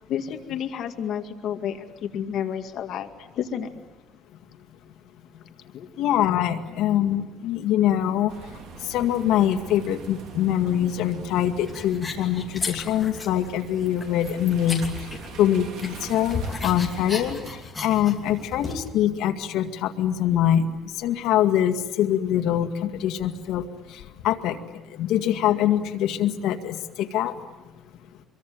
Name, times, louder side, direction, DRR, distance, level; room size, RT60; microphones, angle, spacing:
voice 1, 0.1-3.1 3.3-3.7 5.7-5.9, left 9 dB, 55° left, 6 dB, 2.1 m, -30 dB
voice 2, 6.0-8.3 8.9-14.8 15.4-17.4 17.8-20.7 21.0-23.6 24.2-24.6 25.0-27.3, left 11 dB, 85° left, 7 dB, 2.0 m, -23 dB
sound 1, 8.3-17.6, right 5 dB, 80° right, 4.4 m, -42 dB
sound 2, 11.7-13.5 13.8-15.5 15.8-18.9, left 4 dB, 15° left, 2.8 m, -34 dB
25.5 x 23.0 x 9.4 m, 1.1 s
cardioid pair, 170°, 0 cm